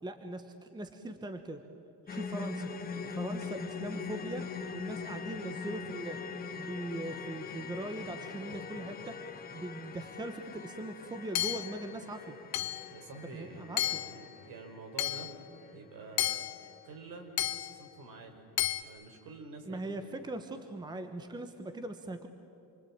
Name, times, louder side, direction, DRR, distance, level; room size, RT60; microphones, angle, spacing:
voice 1, 0.0-1.6 2.1-2.7 3.0-4.5 4.7-6.2 6.6-9.2 9.5-12.4 13.3-14.0 19.7-22.3, right 2 dB, 10° right, 7 dB, 1.1 m, -40 dB
sound 1, 2.1-16.3 16.5-16.7 17.2-17.3, left 5 dB, 20° left, 1.9 m, -42 dB
Hammer / Chink clink, 11.3-11.8 12.5-12.9 13.8-14.2 15.0-15.3 16.2-16.6 17.4-17.8 18.6-18.8, left 13 dB, 60° left, 1.3 m, -32 dB
voice 2, 12.9-15.3 15.7-16.5 16.8-18.5 18.8-20.1, right 3 dB, 55° right, 4 dB, 4.8 m, -48 dB
28.0 x 23.0 x 8.8 m, 3.0 s
cardioid pair, 165°, 40 cm